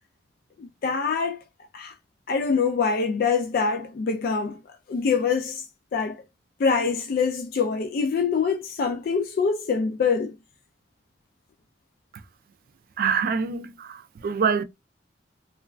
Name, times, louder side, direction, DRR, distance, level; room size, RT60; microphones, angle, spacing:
voice 1, 0.6-1.4 1.7-1.9 2.3-4.6 4.9-5.6 5.9-6.2 6.6-10.4, left 5 dB, 55° left, 0.3 m, -24 dB
voice 2, 13.0-14.6, right 6 dB, 50° right, 0.3 m, -25 dB
3.1 x 2.2 x 2.3 m
head